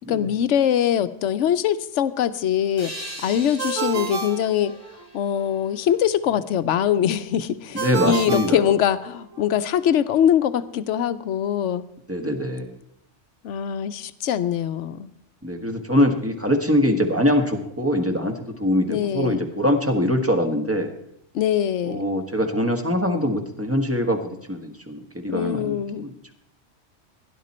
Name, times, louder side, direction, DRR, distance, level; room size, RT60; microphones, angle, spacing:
voice 1, 0.1-2.9 3.2-4.7 5.1-11.9 13.4-15.1 18.9-19.4 21.3-22.1 25.3-26.1, left 9 dB, 75° left, 13 dB, 1.0 m, -23 dB
sound 1, 2.8-6.3, right 1 dB, 30° right, 2.2 m, -41 dB
Ringtone, 3.6-5.3 7.8-9.4, right 5 dB, 85° right, 1.5 m, -30 dB
voice 2, 7.7-8.6 12.1-12.7 15.4-20.9 21.9-24.2 24.5-26.1, equal, 10° right, 5 dB, 1.4 m, -23 dB
17.0 x 11.0 x 4.3 m, 0.74 s
omnidirectional pair, 1.2 m